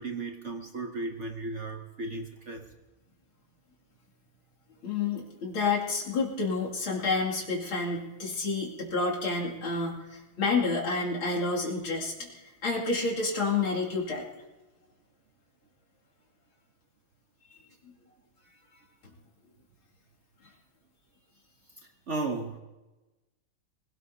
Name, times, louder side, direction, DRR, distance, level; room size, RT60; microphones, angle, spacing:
voice 1, 0.0-2.7 22.1-22.6, right 3 dB, 50° right, 4 dB, 0.9 m, -35 dB
voice 2, 4.8-14.2 17.8-17.9, left 3 dB, 75° left, -3 dB, 3.3 m, -29 dB
24.5 x 17.5 x 2.8 m, 1.1 s
omnidirectional pair, 2.3 m